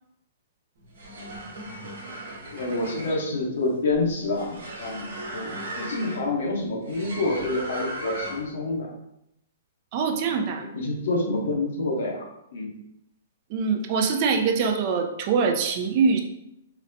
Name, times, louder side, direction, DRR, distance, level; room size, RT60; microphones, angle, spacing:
sound 1, 0.8-8.6, right 1 dB, 75° right, 1.0 m, -37 dB
voice 1, 2.5-5.5 5.7-8.9 10.3-12.3 12.5-12.7, left 2 dB, 70° left, 0 dB, 0.8 m, -28 dB
voice 2, 9.9-10.6 13.5-16.2, right 5 dB, 40° right, 4 dB, 0.4 m, -23 dB
3.9 x 2.1 x 2.6 m, 0.81 s
hypercardioid pair, 145°, 0 cm